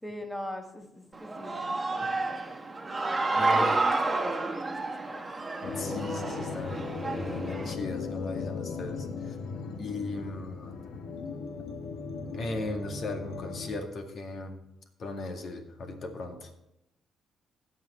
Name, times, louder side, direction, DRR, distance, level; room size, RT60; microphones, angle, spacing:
voice 1, 0.0-2.2 2.5-2.7 3.3-5.2, left 1 dB, 10° left, 4 dB, 1.4 m, -40 dB
Human voice / Cheering, 1.1-7.7, right 3 dB, 20° right, 1.5 m, -30 dB
voice 2, 3.4-3.8 5.7-9.4 9.8-10.8 12.2-14.6 15.0-16.5, left 2 dB, 60° left, 4 dB, 2.1 m, -37 dB
sound 1, 5.6-13.7, left 5 dB, 85° left, 1.3 m, -37 dB
16.0 x 6.0 x 4.4 m, 0.86 s
cardioid pair, 90°, 0 cm